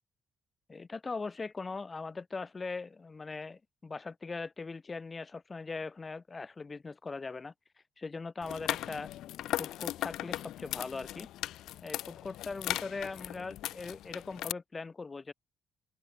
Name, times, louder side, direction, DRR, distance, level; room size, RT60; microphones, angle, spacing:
voice 1, 0.7-7.5 8.0-9.1 9.6-11.3 11.8-15.3, left 4 dB, 20° left, 4.2 m, -40 dB
sound 1, 8.4-14.5, left 13 dB, 85° left, 1.2 m, -38 dB
open air
cardioid pair, 180°, 0 cm